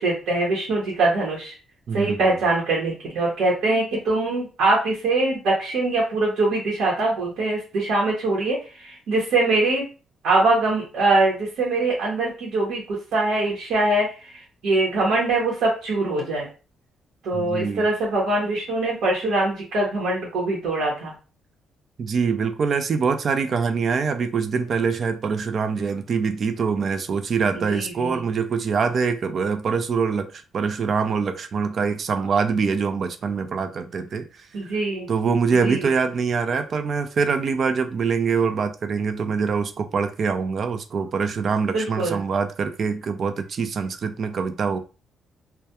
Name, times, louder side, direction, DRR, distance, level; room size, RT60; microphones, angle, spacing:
voice 1, 0.0-1.6 1.9-9.8 10.2-16.5 17.2-21.1 27.5-28.2 34.5-35.1 35.6-35.9 41.7-42.2, right 2 dB, 80° right, 0.9 m, -23 dB
voice 2, 1.9-2.4 17.3-17.9 22.0-34.3 34.6-34.7 35.1-44.8, right 5 dB, 50° right, 0.4 m, -24 dB
2.2 x 2.2 x 2.8 m
cardioid pair, 90°, 0 cm